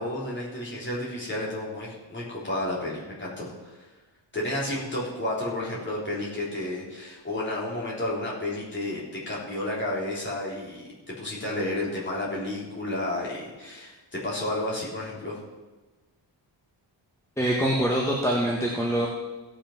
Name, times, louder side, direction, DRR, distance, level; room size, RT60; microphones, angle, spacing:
voice 1, 0.0-3.8 4.3-15.4, left 1 dB, 25° left, -6 dB, 3.9 m, -31 dB
voice 2, 17.4-19.1, right 1 dB, 5° left, -3 dB, 1.4 m, -24 dB
16.5 x 6.1 x 5.9 m, 1.2 s
wide cardioid pair, 150°, 43 cm